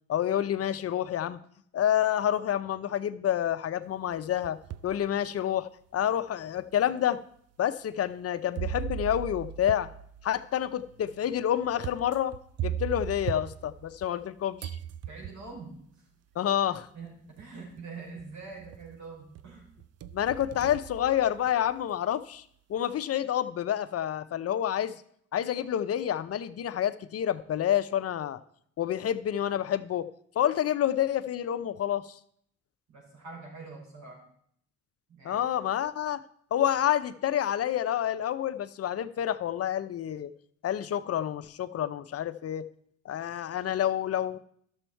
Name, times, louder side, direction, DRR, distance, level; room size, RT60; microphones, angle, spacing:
voice 1, 0.1-1.4 1.7-4.6 4.8-7.2 7.6-9.9 10.2-12.3 12.6-14.7 16.4-16.9 20.1-22.4 22.7-24.9 25.3-28.4 28.8-30.1 30.3-32.2 35.2-36.2 36.5-40.3 40.6-42.6 43.0-44.4, left 10 dB, 55° left, 13 dB, 0.6 m, -28 dB
sound 1, 4.1-5.0 5.6-5.7 6.6-6.7 8.6-14.3 14.6-15.6 16.8-16.9 17.4-17.8 18.2-19.0 19.4-21.7, right 9 dB, 55° right, 0.5 m, -38 dB
voice 2, 15.1-16.1 16.9-19.7 32.9-34.2 35.1-35.6, right 4 dB, 70° right, -3 dB, 5.4 m, -45 dB
12.0 x 7.1 x 4.4 m, 0.65 s
cardioid pair, 90°, 30 cm